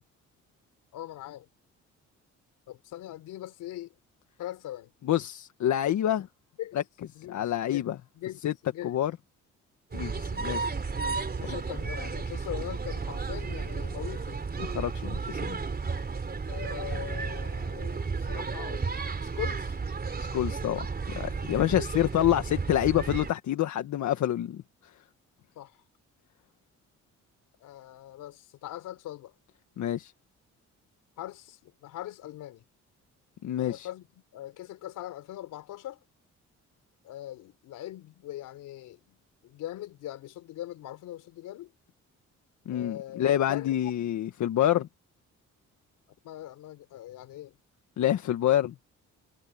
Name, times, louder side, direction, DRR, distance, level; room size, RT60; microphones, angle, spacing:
voice 1, 0.9-1.5 2.7-3.9 4.4-4.9 6.6-6.8 7.1-7.8 8.2-8.9 11.4-14.4 16.5-18.9 19.2-19.8 25.6-25.8 27.6-29.3 31.2-32.6 33.6-36.0 37.0-39.2 39.4-41.7 42.7-43.7 46.2-47.5, left 13 dB, 90° left, 4.5 m, -41 dB
voice 2, 5.0-6.3 7.3-8.0 8.4-8.5 8.8-9.1 9.9-10.7 11.4-11.6 14.6-15.6 20.3-24.6 29.8-30.1 33.4-33.9 42.6-44.9 48.0-48.7, left 12 dB, 70° left, 1.6 m, -27 dB
sound 1, 9.9-23.3, right 4 dB, 30° right, 3.9 m, -33 dB
cardioid pair, 90°, 30 cm